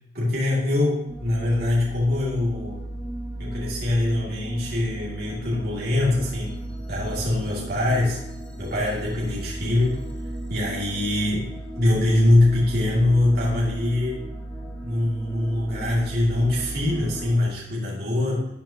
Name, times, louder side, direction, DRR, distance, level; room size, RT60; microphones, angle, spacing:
voice 1, 0.1-2.8 3.4-6.6 6.9-8.2 8.6-10.0 10.5-11.5 11.8-14.2 14.8-18.5, left 1 dB, 60° right, -5 dB, 2.4 m, -23 dB
sound 1, 1.1-17.4, right 1 dB, 5° left, 2.2 m, -35 dB
13.0 x 8.7 x 2.9 m, 0.86 s
head